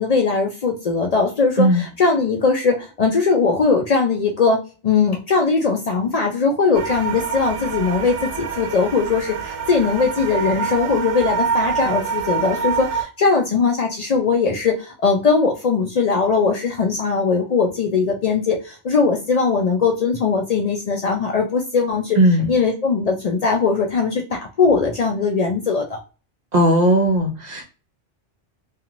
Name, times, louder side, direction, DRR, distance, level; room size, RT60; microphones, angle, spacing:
voice 1, 0.0-4.6 4.8-22.2 22.5-26.0, left 4 dB, 70° left, 1 dB, 0.3 m, -20 dB
sound 1, 6.7-13.0, right 6 dB, 75° right, 0.9 m, -26 dB
voice 2, 22.2-22.5 26.5-27.6, right 1 dB, 45° right, 1 dB, 0.7 m, -17 dB
2.9 x 2.4 x 2.5 m, 0.33 s
omnidirectional pair, 1.2 m